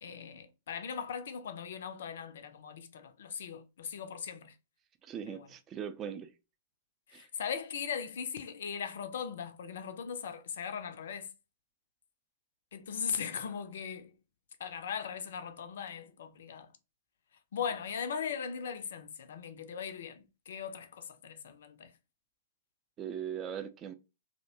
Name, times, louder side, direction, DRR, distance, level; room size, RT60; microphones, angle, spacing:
voice 1, 0.0-4.5 5.3-5.5 7.1-11.3 12.7-14.1 14.6-16.7 17.5-21.9, left 7 dB, 60° left, 0.4 m, -39 dB
voice 2, 5.0-6.3 7.1-7.3 23.0-23.9, right 8 dB, 25° right, 0.4 m, -40 dB
2.5 x 2.1 x 2.7 m
figure-of-eight pair, 105°, 0 cm